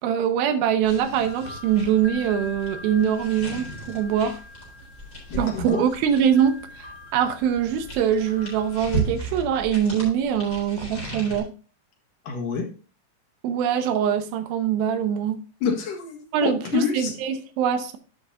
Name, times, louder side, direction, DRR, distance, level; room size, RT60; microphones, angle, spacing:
voice 1, 0.0-4.4 5.4-11.5 13.4-15.4 16.3-18.0, right 8 dB, 85° right, 2.7 m, -23 dB
sound 1, 0.8-6.6 7.4-11.4, right 2 dB, 20° left, 5.3 m, -35 dB
sound 2, 0.9-9.3, left 2 dB, 35° left, 1.2 m, -43 dB
voice 2, 5.3-5.9 12.2-12.7 15.6-17.1, left 5 dB, 70° left, 3.1 m, -27 dB
11.0 x 7.3 x 2.8 m
omnidirectional pair, 4.2 m